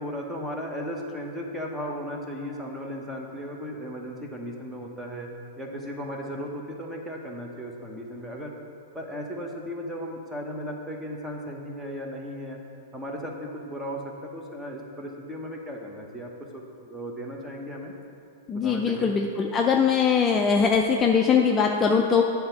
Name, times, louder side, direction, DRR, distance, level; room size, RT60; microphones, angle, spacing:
voice 1, 0.0-5.3 5.6-8.5 8.9-12.6 12.9-17.9 18.6-19.1, equal, 10° right, 0 dB, 0.9 m, -36 dB
voice 2, 18.5-22.2, left 6 dB, 20° left, 2 dB, 0.4 m, -21 dB
8.7 x 3.4 x 5.8 m, 2.5 s
hypercardioid pair, 135°, 0 cm